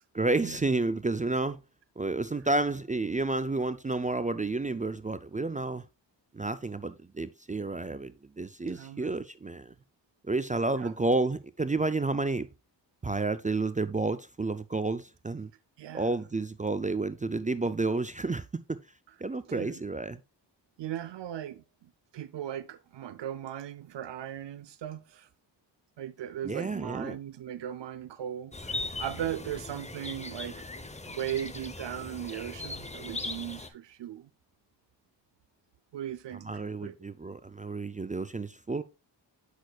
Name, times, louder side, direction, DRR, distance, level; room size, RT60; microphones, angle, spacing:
voice 1, 0.1-1.6 2.0-5.8 6.3-9.7 10.3-12.5 13.0-15.5 15.9-18.8 19.2-20.2 26.4-27.2 36.4-38.8, right 3 dB, 20° right, 0.4 m, -30 dB
voice 2, 8.7-9.2 10.8-10.9 15.8-16.1 19.5-19.8 20.8-25.3 26.0-34.3 35.9-37.0, right 10 dB, 75° right, 0.6 m, -38 dB
sound 1, 28.5-33.7, left 2 dB, 15° left, 0.9 m, -39 dB
8.1 x 6.4 x 2.3 m
cardioid pair, 55°, 44 cm